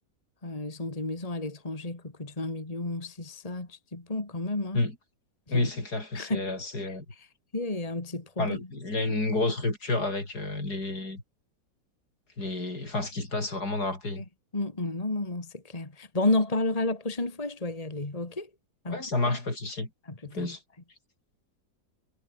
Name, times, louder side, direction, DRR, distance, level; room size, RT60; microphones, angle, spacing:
voice 1, 0.4-4.8 5.5-5.7 6.1-6.5 6.8-7.3 7.5-8.6 14.2-14.3 14.5-18.5 18.8-19.0 20.2-20.5, left 2 dB, 20° left, 2.5 m, -31 dB
voice 2, 5.5-7.0 8.4-11.2 12.4-14.2 18.9-19.9 20.2-20.6, left 2 dB, 60° left, 6.2 m, -30 dB
omnidirectional pair, 1.9 m